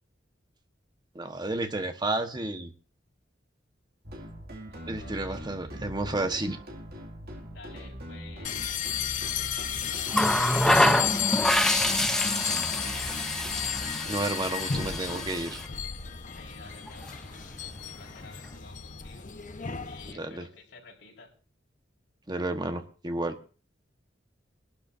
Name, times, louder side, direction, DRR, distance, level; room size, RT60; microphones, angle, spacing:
voice 1, 1.1-2.7 4.9-6.6 14.1-15.6 20.1-20.5 22.3-23.3, right 2 dB, 25° right, 7 dB, 1.2 m, -31 dB
sound 1, 4.0-14.1, equal, 60° right, 2.2 m, -42 dB
voice 2, 4.7-5.4 7.5-8.7 9.2-10.2 11.0-13.2 16.3-19.3 19.8-21.3, left 4 dB, 80° left, -2 dB, 4.5 m, -51 dB
sound 2, 8.4-20.1, left 8 dB, 45° left, 0.9 m, -33 dB
Water tap faucet, 10.1-15.7 16.9-17.1, left 1 dB, 5° left, 0.6 m, -26 dB
24.0 x 12.0 x 2.6 m, 0.37 s
head